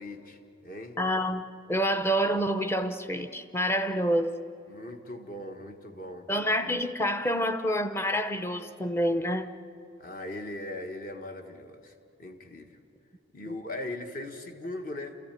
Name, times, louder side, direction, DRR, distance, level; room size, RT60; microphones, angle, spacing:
voice 1, 0.0-1.0 4.7-6.3 10.0-11.9 12.2-12.8 13.3-15.3, left 1 dB, 45° left, 5 dB, 1.5 m, -39 dB
voice 2, 1.0-4.4 6.3-9.5 13.5-13.6, equal, 10° left, 9 dB, 0.7 m, -28 dB
28.5 x 14.5 x 9.1 m, 2.7 s
head